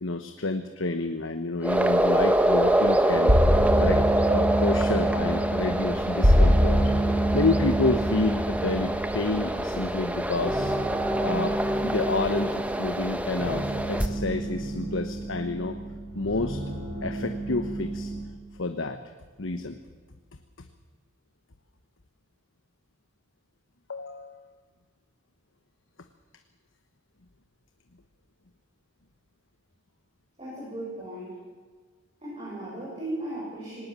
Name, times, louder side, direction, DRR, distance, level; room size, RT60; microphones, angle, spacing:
voice 1, 0.0-3.4 3.8-6.8 7.3-10.8 11.2-15.8 16.1-16.6 17.0-18.1 18.6-19.0 19.4-19.8 23.9-24.5, left 2 dB, 70° left, 7 dB, 1.1 m, -29 dB
sound 1, 1.6-14.1, right 1 dB, 5° right, 1.2 m, -26 dB
sound 2, 3.1-18.2, equal, 70° right, 5.4 m, -27 dB
voice 2, 30.4-31.4 32.2-33.9, right 1 dB, 30° right, -7 dB, 7.7 m, -36 dB
19.5 x 19.0 x 7.5 m, 1.5 s
head